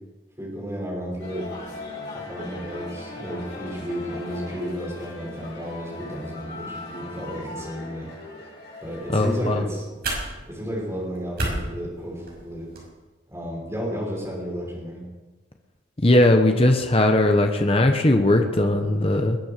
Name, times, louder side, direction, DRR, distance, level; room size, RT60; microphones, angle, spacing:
voice 1, 0.4-1.5 2.1-8.1 8.8-9.8 10.5-12.7 13.3-15.0, equal, 15° right, -4 dB, 6.1 m, -32 dB
sound 1, 1.2-9.4, left 2 dB, 55° left, 7.4 m, -39 dB
sound 2, 8.9-12.9, right 2 dB, 50° right, 6.0 m, -34 dB
voice 2, 9.1-9.6 16.0-19.4, left 1 dB, 30° left, 4 dB, 1.1 m, -19 dB
21.5 x 9.4 x 6.8 m, 1.2 s
head